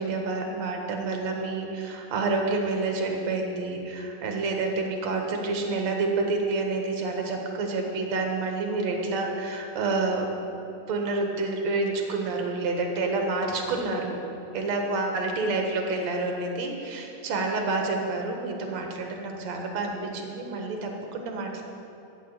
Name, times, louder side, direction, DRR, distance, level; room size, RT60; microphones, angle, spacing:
voice 1, 0.0-10.3 10.9-14.2 14.5-21.6, right 3 dB, 60° right, 2 dB, 2.2 m, -28 dB
14.0 x 7.0 x 9.0 m, 2.9 s
omnidirectional pair, 4.3 m